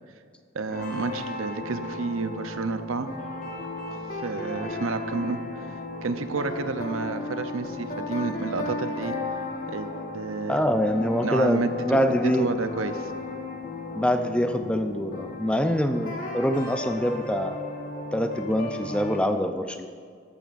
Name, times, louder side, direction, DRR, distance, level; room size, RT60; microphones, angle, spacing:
voice 1, 0.5-3.1 4.2-5.4 6.0-9.2 9.7-10.6 11.2-13.1, right 3 dB, 75° right, 10 dB, 0.7 m, -30 dB
sound 1, 0.7-19.2, left 2 dB, 40° left, 1.4 m, -35 dB
voice 2, 10.5-12.5 14.0-17.6 18.1-19.9, equal, 5° left, 7 dB, 0.4 m, -25 dB
14.5 x 11.5 x 2.5 m, 2.2 s
head